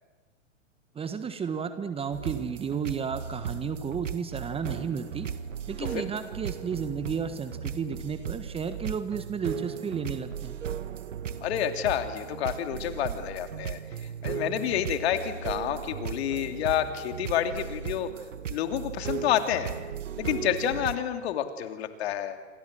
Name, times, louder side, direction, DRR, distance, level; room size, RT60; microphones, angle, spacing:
voice 1, 0.9-5.3 5.7-10.6, right 6 dB, 15° right, 11 dB, 1.4 m, -33 dB
sound 1, 2.1-20.9, right 8 dB, 70° right, 1.8 m, -36 dB
voice 2, 11.4-13.8 14.2-18.1 18.5-19.7 20.2-22.4, left 10 dB, 55° left, 8 dB, 3.0 m, -29 dB
28.0 x 25.5 x 7.7 m, 1.3 s
hypercardioid pair, 110°, 38 cm